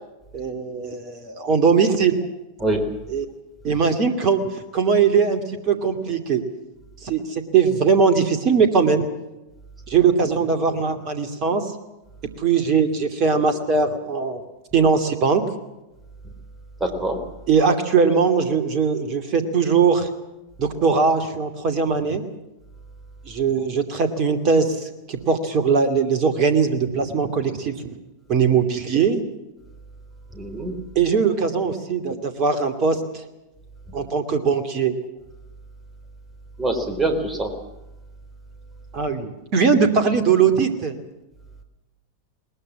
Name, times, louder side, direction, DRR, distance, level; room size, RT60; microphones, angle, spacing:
voice 1, 0.3-2.2 3.1-3.3 3.6-4.5 4.7-6.4 7.0-9.1 9.9-11.6 12.4-14.4 14.7-15.4 17.5-20.1 20.6-22.2 23.3-27.9 28.3-29.2 30.9-33.2 33.9-34.9 38.9-40.9, right 5 dB, 35° right, 7 dB, 2.5 m, -20 dB
voice 2, 16.8-17.2 30.3-30.7 36.6-37.5, right 2 dB, 15° right, 6 dB, 3.9 m, -24 dB
20.5 x 20.5 x 7.5 m, 0.98 s
figure-of-eight pair, 90°, 0 cm